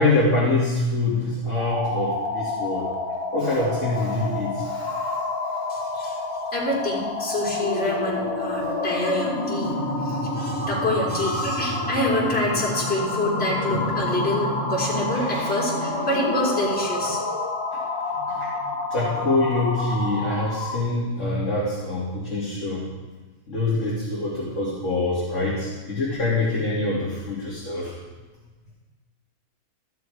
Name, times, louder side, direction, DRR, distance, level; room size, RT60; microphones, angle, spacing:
voice 1, 0.0-2.9 3.3-5.2 15.1-15.6 17.0-17.1 17.7-22.9 23.5-27.9, left 2 dB, 60° left, -8 dB, 2.8 m, -25 dB
sound 1, 1.5-20.9, left 2 dB, 20° left, 2.0 m, -28 dB
voice 2, 5.7-6.2 6.5-9.8 10.0-17.2, left 1 dB, 45° left, -6 dB, 4.2 m, -27 dB
13.5 x 11.0 x 4.8 m, 1.2 s
omnidirectional pair, 1.5 m